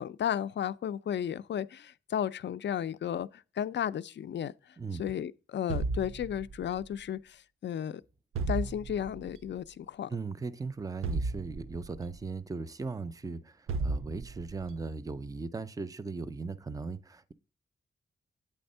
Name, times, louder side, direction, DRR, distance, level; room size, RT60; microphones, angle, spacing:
voice 1, 0.0-4.5 5.0-8.0 8.5-10.1, left 9 dB, 60° left, 0.4 m, -34 dB
sound 1, 5.7-6.8 8.3-9.3 11.0-12.1 13.7-14.7, right 3 dB, 80° right, 0.5 m, -34 dB
voice 2, 10.1-17.3, right 4 dB, 15° right, 0.5 m, -38 dB
8.6 x 3.4 x 5.4 m
cardioid pair, 75°, 21 cm